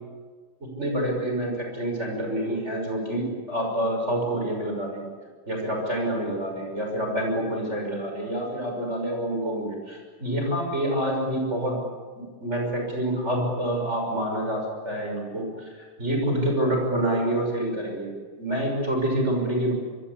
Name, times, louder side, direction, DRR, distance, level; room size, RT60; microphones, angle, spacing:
voice 1, 0.6-5.1 5.5-11.8 12.2-15.5 16.0-18.1 18.4-19.7, right 1 dB, 15° right, 1 dB, 6.1 m, -27 dB
25.0 x 23.5 x 8.6 m, 1.5 s
omnidirectional pair, 4.5 m